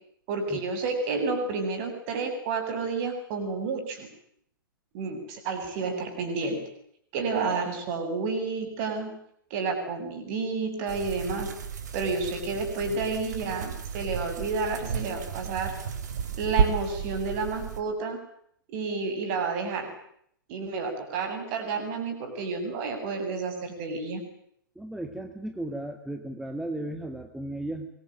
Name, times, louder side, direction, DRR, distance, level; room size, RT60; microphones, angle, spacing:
voice 1, 0.3-4.1 4.9-6.6 7.1-9.2 9.5-11.5 11.9-15.7 16.3-18.2 18.7-19.9 20.5-24.2, right 4 dB, 35° right, 6 dB, 7.9 m, -30 dB
sound 1, 10.9-17.8, right 7 dB, 55° right, 3.8 m, -32 dB
voice 2, 24.8-27.9, right 1 dB, 5° right, 6 dB, 2.3 m, -35 dB
24.5 x 23.5 x 9.0 m, 0.70 s
figure-of-eight pair, 110°, 11 cm